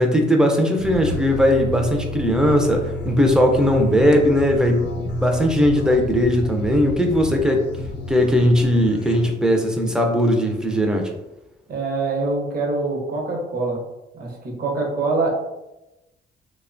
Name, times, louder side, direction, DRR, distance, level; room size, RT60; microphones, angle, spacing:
voice 1, 0.0-7.7 8.1-11.1, equal, 5° right, 2 dB, 0.4 m, -18 dB
sound 1, 0.8-9.3, left 2 dB, 60° left, 0.5 m, -31 dB
voice 2, 11.7-13.8 14.1-15.3, right 3 dB, 50° right, -1 dB, 0.7 m, -24 dB
2.6 x 2.1 x 2.5 m, 0.97 s
cardioid pair, 90°, 20 cm